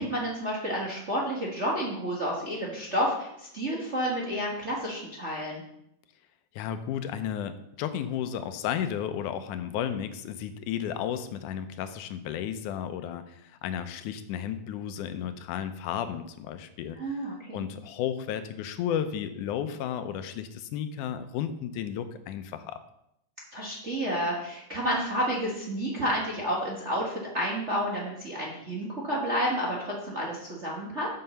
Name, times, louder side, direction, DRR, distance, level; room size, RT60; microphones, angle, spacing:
voice 1, 0.0-5.6 17.0-17.6 23.5-31.1, equal, 35° right, -3 dB, 1.1 m, -30 dB
voice 2, 6.5-17.3 17.5-22.8, left 9 dB, 90° left, 10 dB, 2.2 m, -33 dB
7.5 x 5.7 x 6.7 m, 0.78 s
omnidirectional pair, 3.5 m